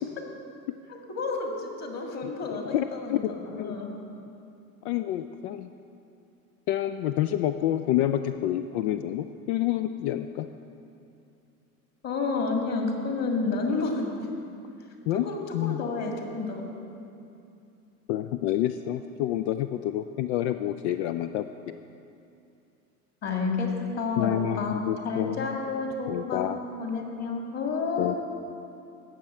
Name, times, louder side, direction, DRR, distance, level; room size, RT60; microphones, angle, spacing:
voice 1, 0.9-3.9 12.0-14.3 15.2-16.6 23.2-28.2, left 4 dB, 35° left, 1 dB, 2.0 m, -30 dB
voice 2, 2.7-3.2 3.6-3.7 4.8-5.7 6.7-10.5 15.1-15.8 18.1-21.7 24.2-25.4 26.1-26.6 28.0-28.1, left 12 dB, 50° left, 9 dB, 0.4 m, -28 dB
17.0 x 6.4 x 4.4 m, 2.7 s
figure-of-eight pair, 75°, 44 cm